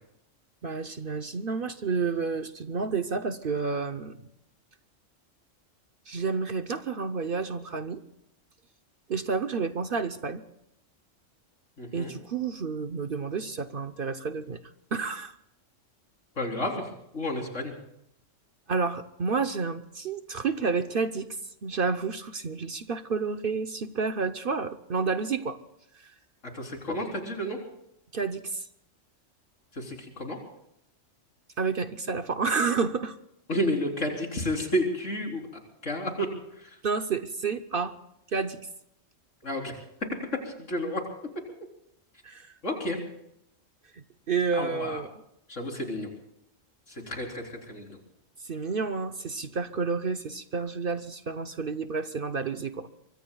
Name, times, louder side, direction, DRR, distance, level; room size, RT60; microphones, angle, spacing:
voice 1, 0.6-4.3 6.1-8.0 9.1-10.4 11.9-14.6 14.9-15.4 18.7-21.3 21.6-25.6 25.9-26.1 28.1-28.7 31.6-33.2 36.8-37.9 38.3-38.7 42.2-42.5 43.9-45.1 48.4-52.9, right 5 dB, 50° right, 9 dB, 0.9 m, -30 dB
voice 2, 11.8-12.1 16.4-17.7 26.5-27.6 29.7-30.4 33.5-35.5 35.8-36.3 36.5-36.8 39.4-39.7 40.4-41.0 42.6-43.0 44.5-45.0 45.5-46.1 46.9-48.0, equal, 70° left, 1 dB, 4.2 m, -31 dB
24.5 x 24.0 x 2.3 m, 0.77 s
omnidirectional pair, 1.3 m